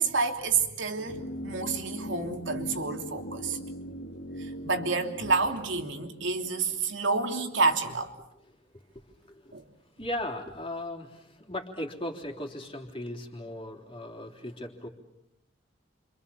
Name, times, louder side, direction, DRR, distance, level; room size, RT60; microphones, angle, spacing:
voice 1, 0.0-3.6 4.4-8.1 9.5-9.6, right 4 dB, 70° right, 4 dB, 3.0 m, -29 dB
sound 1, 1.1-7.1 7.3-7.4, equal, 85° left, 2.2 m, -40 dB
voice 2, 9.0-9.6 10.0-14.9, left 1 dB, 25° left, 2 dB, 3.4 m, -37 dB
29.5 x 26.5 x 7.1 m, 0.85 s
head